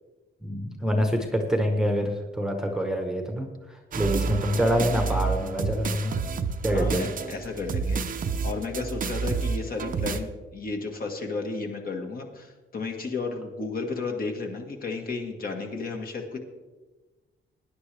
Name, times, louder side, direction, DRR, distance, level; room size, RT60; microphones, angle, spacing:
voice 1, 0.4-6.2 6.6-7.1, equal, 5° right, 3 dB, 1.1 m, -26 dB
sound 1, 3.9-10.2, right 5 dB, 40° right, 0.7 m, -29 dB
voice 2, 6.7-8.0 8.4-16.4, left 4 dB, 45° left, 3 dB, 1.6 m, -33 dB
19.0 x 10.0 x 3.4 m, 1.2 s
wide cardioid pair, 180°, 21 cm